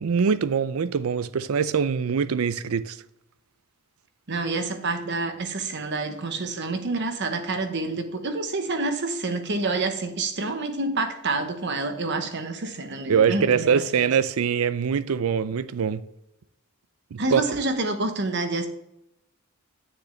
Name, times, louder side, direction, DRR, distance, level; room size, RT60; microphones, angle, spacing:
voice 1, 0.0-3.0 13.1-16.0 17.1-17.4, right 6 dB, 75° right, 0.5 m, -23 dB
voice 2, 4.3-14.2 17.2-18.7, right 3 dB, 50° right, 1.0 m, -28 dB
9.8 x 6.6 x 3.2 m
head